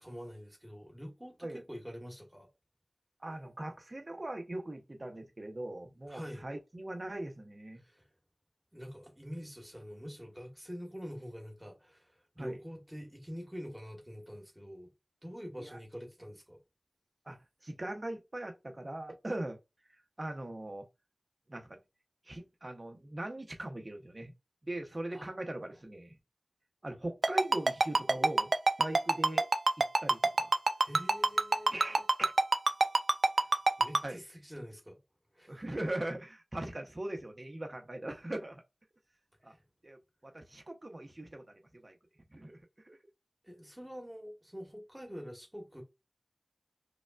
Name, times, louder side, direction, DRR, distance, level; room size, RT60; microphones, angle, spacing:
voice 1, 0.0-2.5 6.1-6.4 7.8-8.1 8.7-14.9 15.2-16.6 25.1-25.7 30.8-32.0 33.4-35.0 35.3-35.6 39.5-39.6 43.4-45.8, equal, 10° right, 1.4 m, -46 dB
voice 2, 3.2-7.8 12.4-12.6 15.6-15.8 17.3-19.6 20.2-20.9 21.5-21.8 22.2-24.3 24.6-26.2 26.8-28.5 28.8-29.4 29.8-30.5 31.7-32.3 34.0-34.2 35.5-38.6 39.4-39.5 39.8-41.5 41.8-41.9 42.3-43.0, right 1 dB, 45° right, 0.9 m, -40 dB
Ringtone, 27.2-34.0, right 3 dB, 80° right, 0.3 m, -25 dB
4.9 x 2.3 x 2.4 m
wide cardioid pair, 55°, 0 cm